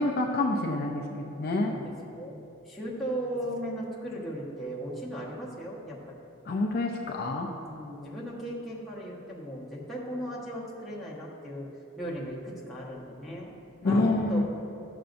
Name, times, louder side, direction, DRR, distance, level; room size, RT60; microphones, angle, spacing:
voice 1, 0.0-1.8 6.5-7.5 13.8-14.4, left 2 dB, 45° left, 0 dB, 0.5 m, -27 dB
voice 2, 1.7-6.2 7.6-11.7 12.0-13.5 13.8-14.4, equal, ahead, -8 dB, 1.2 m, -37 dB
11.5 x 6.7 x 2.6 m, 2.6 s
head